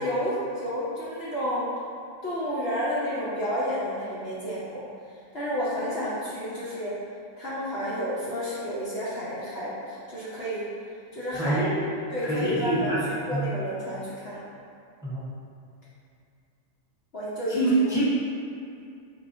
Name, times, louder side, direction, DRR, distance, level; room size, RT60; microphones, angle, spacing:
voice 1, 0.0-1.8 2.2-4.8 5.3-7.0 7.4-10.7 11.1-11.7 12.1-13.0 13.3-14.4 17.1-17.8, equal, 55° left, -9 dB, 0.9 m, -30 dB
voice 2, 11.3-11.8 12.2-13.0 13.3-13.4 15.0-15.2 17.5-18.0, right 2 dB, 5° right, -11 dB, 0.8 m, -25 dB
4.7 x 3.1 x 2.6 m, 2.4 s
omnidirectional pair, 1.4 m